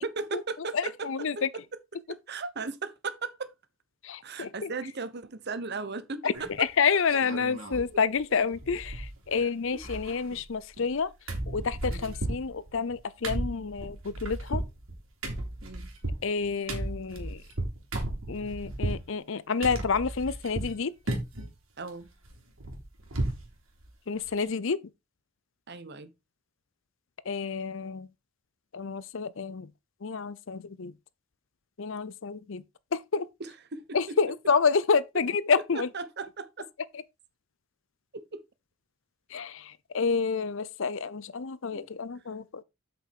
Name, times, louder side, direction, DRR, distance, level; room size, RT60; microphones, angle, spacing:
voice 1, 0.0-1.1 1.3-1.4 2.1-3.5 4.2-6.7 9.3-9.8 11.9-12.1 15.6-15.9 21.8-22.1 25.7-26.1 33.4-34.2 35.7-36.7 38.1-38.4 41.7-41.9, right 4 dB, 50° right, 1.1 m, -37 dB
voice 2, 0.7-1.5 4.0-4.7 6.2-6.3 6.6-11.1 11.5-14.6 16.2-17.4 18.3-20.9 24.1-24.8 27.3-28.1 28.7-29.7 30.0-30.9 31.8-32.6 33.1-33.3 33.9-35.9 39.3-39.6 39.9-42.6, left 5 dB, 60° left, 0.6 m, -29 dB
sound 1, 6.3-6.7 7.1-7.9 8.2-8.3 8.5-9.4 9.6-11.0 11.3-19.0 19.6-20.8 21.1-21.5 21.9-23.5 23.8-23.9 24.2-24.4, right 1 dB, 65° right, 3.2 m, -34 dB
8.2 x 6.2 x 4.5 m
head